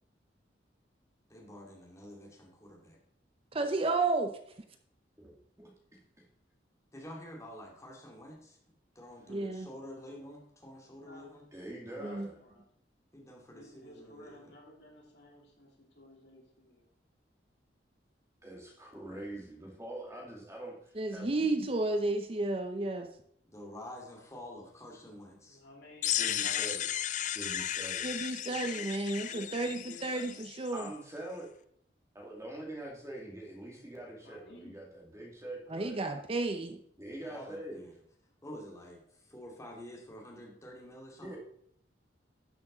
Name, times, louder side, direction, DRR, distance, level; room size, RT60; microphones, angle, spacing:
voice 1, 1.3-3.0 6.9-8.6 8.9-11.5 13.1-14.5 23.5-25.6 37.2-37.9 38.4-41.4, left 1 dB, 15° left, -1 dB, 2.3 m, -48 dB
voice 2, 3.5-4.3 9.3-9.7 12.0-12.3 21.0-23.1 28.0-30.9 35.7-36.8, right 2 dB, 30° right, 7 dB, 0.6 m, -32 dB
voice 3, 10.8-11.3 11.8-12.6 13.5-16.9 25.5-26.7 28.1-28.8 29.1-30.3 34.2-34.8, left 1 dB, 70° left, -2 dB, 2.9 m, -54 dB
voice 4, 11.5-12.3 18.4-21.5 26.2-26.8 27.2-28.1 30.7-31.5 32.1-36.0 37.0-37.9 41.2-41.4, right 1 dB, 15° right, -1 dB, 2.2 m, -44 dB
sound 1, 26.0-30.9, left 11 dB, 45° left, 0.4 m, -35 dB
12.0 x 6.5 x 3.9 m, 0.68 s
head